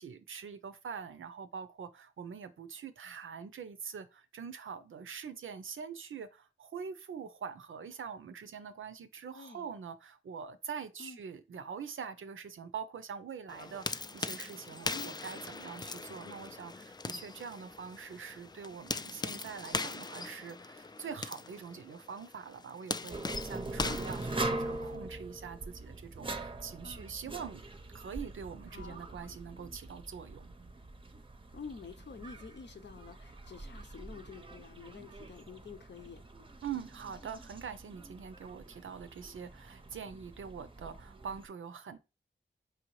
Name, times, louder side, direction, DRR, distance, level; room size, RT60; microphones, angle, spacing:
voice 1, 0.0-27.6 27.9-30.5 36.6-42.0, right 6 dB, 80° right, 0.6 m, -44 dB
voice 2, 9.3-9.7 11.0-11.2 14.9-15.1 23.8-24.0 26.8-27.1 28.7-29.0 31.5-36.2, left 5 dB, 60° left, 0.7 m, -48 dB
sound 1, 13.5-25.0, left 3 dB, 20° left, 0.3 m, -40 dB
sound 2, 23.1-41.5, right 2 dB, 25° right, 0.7 m, -43 dB
4.8 x 2.8 x 3.1 m
cardioid pair, 40°, 21 cm